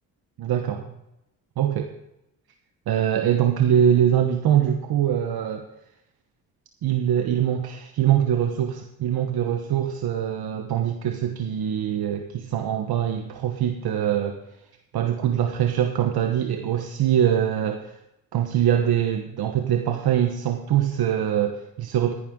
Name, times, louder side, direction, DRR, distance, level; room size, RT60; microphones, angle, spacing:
voice 1, 0.4-0.9 1.6-1.9 2.9-5.6 6.8-14.4 14.9-17.9 18.3-22.1, right 10 dB, 70° right, 5 dB, 1.2 m, -23 dB
14.5 x 11.0 x 3.8 m, 0.87 s
cardioid pair, 65°, 38 cm